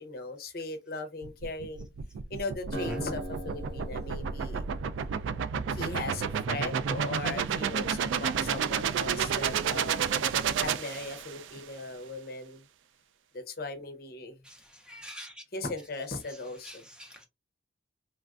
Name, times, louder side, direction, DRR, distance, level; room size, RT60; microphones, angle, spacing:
voice 1, 0.0-1.9 2.3-4.6 5.7-10.0 10.6-12.6 13.3-14.4 15.5-16.8, left 3 dB, 50° left, 0.6 m, -38 dB
sound 1, 1.2-11.5, right 7 dB, 90° right, 0.3 m, -31 dB
Acoustic guitar, 2.7-6.3, right 1 dB, 75° right, 1.0 m, -41 dB
voice 2, 14.4-15.4 16.6-17.2, equal, 5° right, 0.4 m, -43 dB
3.2 x 2.4 x 2.3 m
head